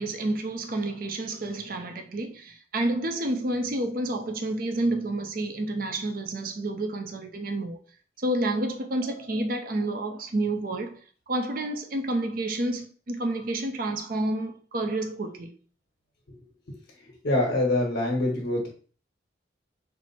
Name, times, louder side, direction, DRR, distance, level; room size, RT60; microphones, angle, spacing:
voice 1, 0.0-7.8 8.2-15.5, right 1 dB, 50° right, 0.6 m, -29 dB
voice 2, 17.2-18.7, left 2 dB, 70° left, 1.3 m, -24 dB
4.4 x 2.1 x 4.2 m
head